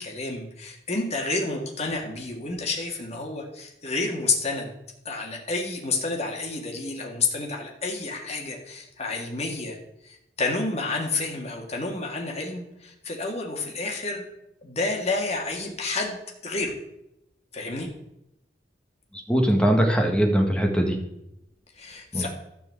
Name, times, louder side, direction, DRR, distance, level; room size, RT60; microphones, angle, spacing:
voice 1, 0.0-4.7 5.1-9.8 10.0-14.3 14.6-16.7 17.5-17.9 21.8-22.3, left 3 dB, 35° left, 0 dB, 2.0 m, -30 dB
voice 2, 19.3-20.9 22.1-22.3, equal, 5° left, 2 dB, 1.5 m, -21 dB
12.5 x 4.7 x 7.8 m, 0.85 s
head